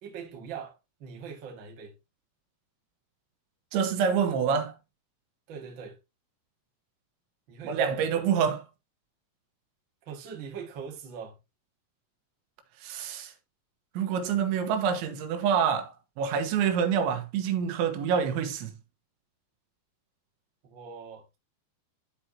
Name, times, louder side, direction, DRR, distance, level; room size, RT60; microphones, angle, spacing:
voice 1, 0.0-1.9 5.5-6.0 7.5-8.2 10.0-11.3 20.6-21.4, right 6 dB, 50° right, 1.4 m, -42 dB
voice 2, 3.7-4.7 7.6-8.6 12.8-13.3 14.0-18.7, right 7 dB, 85° right, 3.5 m, -27 dB
12.0 x 4.5 x 2.8 m
omnidirectional pair, 5.2 m